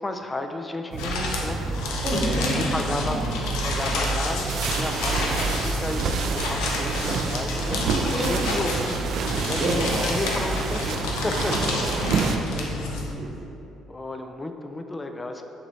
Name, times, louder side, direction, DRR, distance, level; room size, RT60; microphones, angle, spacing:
voice 1, 0.0-1.6 2.1-11.0 11.2-11.7 13.9-15.4, left 2 dB, 20° left, 6 dB, 0.3 m, -33 dB
sound 1, 0.9-12.4, right 5 dB, 65° right, 0.3 m, -29 dB
sound 2, 1.0-13.1, left 2 dB, 85° left, 0.5 m, -29 dB
voice 2, 2.0-3.4 7.6-8.4 9.6-10.0 11.6-11.7 12.0-13.3, right 1 dB, 45° right, -4 dB, 0.9 m, -30 dB
6.1 x 3.1 x 2.7 m, 2.9 s
supercardioid pair, 85°, 0 cm